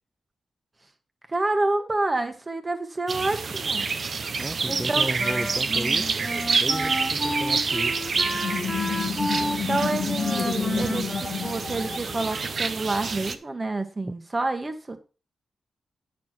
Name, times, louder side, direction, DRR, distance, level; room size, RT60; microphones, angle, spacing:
voice 1, 1.3-3.9 4.6-5.1 9.4-15.0, right 2 dB, 30° right, 1.5 m, -28 dB
sound 1, 3.1-13.4, right 5 dB, 55° right, 0.8 m, -28 dB
voice 2, 4.4-6.1 6.6-8.0, right 1 dB, 10° right, 0.5 m, -33 dB
Wind instrument woodwind instrument, 4.7-12.2, equal, 10° left, 2.1 m, -32 dB
sound 2, 8.1-12.6, left 7 dB, 70° left, 1.1 m, -30 dB
9.5 x 6.8 x 4.5 m
cardioid pair, 80°, 0 cm